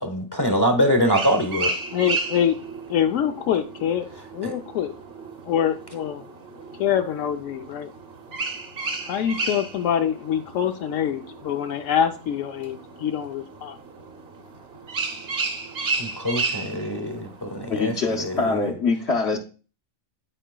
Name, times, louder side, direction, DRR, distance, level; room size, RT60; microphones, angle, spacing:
voice 1, 0.0-1.7 4.4-4.5 16.0-18.6, equal, 20° left, 4 dB, 0.8 m, -24 dB
sound 1, 1.0-18.7, right 3 dB, 55° right, 1.1 m, -34 dB
voice 2, 1.9-2.6 2.9-4.1 4.3-4.9 5.4-6.2 6.8-7.9 9.0-13.8, left 9 dB, 85° left, 6 dB, 1.0 m, -25 dB
voice 3, 17.7-19.4, left 4 dB, 60° left, 1 dB, 1.1 m, -24 dB
11.5 x 4.9 x 2.2 m, 0.37 s
omnidirectional pair, 1.3 m